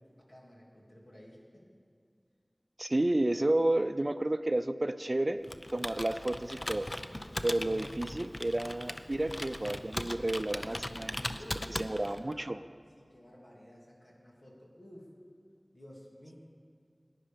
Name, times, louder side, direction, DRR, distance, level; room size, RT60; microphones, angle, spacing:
voice 1, 0.3-1.7 10.9-12.6 12.9-15.1 15.7-16.3, equal, 65° left, -3 dB, 2.9 m, -53 dB
voice 2, 2.8-5.4 5.7-6.9 7.4-11.2 11.8-12.6, right 1 dB, 45° right, 11 dB, 0.5 m, -31 dB
Computer keyboard, 5.4-12.3, left 1 dB, 40° left, 0.6 m, -39 dB
18.0 x 10.0 x 5.2 m, 2.3 s
wide cardioid pair, 40°, 0 cm